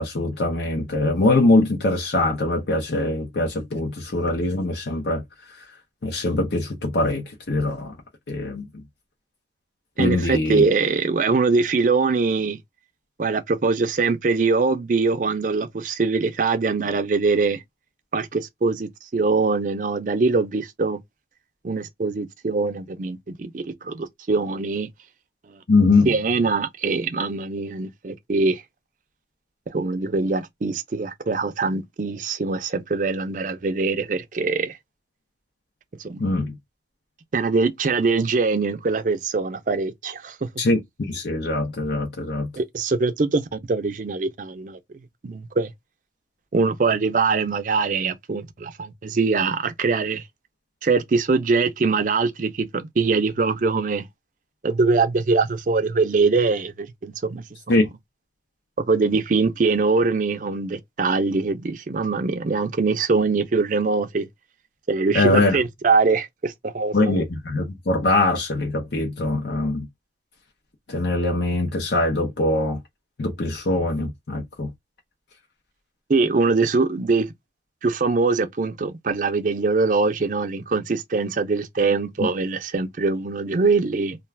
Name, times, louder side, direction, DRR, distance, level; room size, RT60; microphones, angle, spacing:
voice 1, 0.0-5.2 6.0-8.0 8.3-8.7 10.0-10.6 25.7-26.1 36.2-36.6 40.6-42.5 57.7-57.9 65.1-65.6 66.9-69.9 70.9-72.8 73.2-74.7, left 2 dB, 70° left, 0.7 m, -22 dB
voice 2, 10.0-12.6 13.2-17.6 18.1-21.0 21.6-24.9 25.5-25.6 26.1-28.6 29.7-34.8 36.0-36.2 37.3-40.5 42.6-44.8 45.2-45.7 46.5-50.2 50.8-54.1 54.6-57.4 58.8-64.3 64.9-67.2 76.1-77.3 77.8-84.2, right 4 dB, 45° right, 0.4 m, -23 dB
2.4 x 2.3 x 3.2 m
head